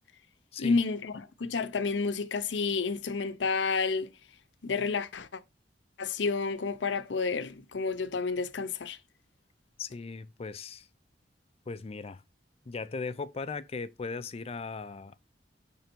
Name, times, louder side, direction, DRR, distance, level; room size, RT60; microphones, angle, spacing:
voice 1, 0.6-1.1 1.4-4.1 4.6-5.4 6.0-9.0, left 4 dB, 80° left, 0.6 m, -30 dB
voice 2, 9.8-10.9 11.7-12.2 12.7-15.2, left 4 dB, 35° left, 0.4 m, -38 dB
6.4 x 3.4 x 4.4 m
head